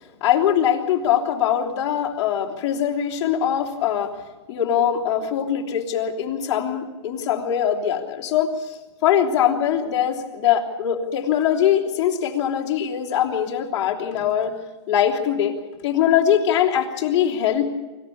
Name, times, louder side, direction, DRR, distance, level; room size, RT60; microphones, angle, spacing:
voice 1, 0.2-4.1 4.5-14.5 14.9-15.6 15.8-17.6, left 9 dB, 30° left, -4 dB, 3.2 m, -22 dB
25.5 x 14.5 x 8.6 m, 1.2 s
hypercardioid pair, 160°, 15 cm